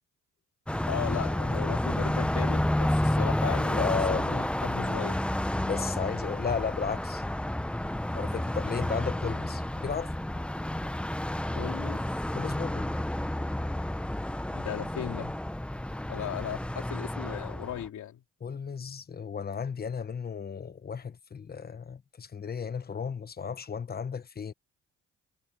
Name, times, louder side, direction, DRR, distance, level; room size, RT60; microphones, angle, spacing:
Car passing by, 0.7-17.9, left 1 dB, 5° left, 0.7 m, -30 dB
voice 1, 0.9-5.2 11.5-12.1 14.5-15.3 16.1-18.2, left 11 dB, 70° left, 3.7 m, -37 dB
voice 2, 3.8-4.3 5.6-7.2 8.1-10.1 12.3-12.9 18.4-24.5, left 6 dB, 30° left, 1.2 m, -34 dB
cardioid pair, 90°, 30 cm